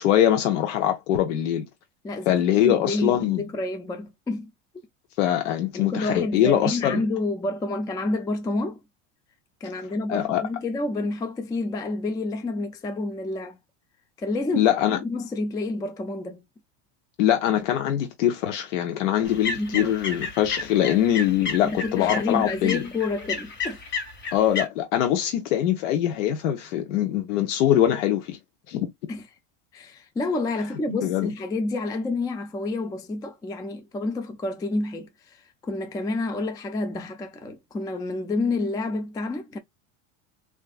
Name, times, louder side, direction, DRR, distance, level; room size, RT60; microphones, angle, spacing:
voice 1, 0.0-1.6 2.3-3.5 5.2-7.0 9.8-10.4 14.5-15.0 17.2-22.8 24.3-28.4 28.7-28.9 30.9-31.3, left 11 dB, 90° left, 0.7 m, -23 dB
voice 2, 2.0-4.5 5.7-8.8 9.6-13.6 14.2-16.4 19.5-20.2 21.6-23.8 29.1-29.2 29.7-39.6, left 2 dB, 10° left, 0.3 m, -29 dB
sound 1, 19.3-24.7, left 4 dB, 30° left, 1.2 m, -32 dB
3.4 x 2.5 x 2.4 m
supercardioid pair, 110°, 36 cm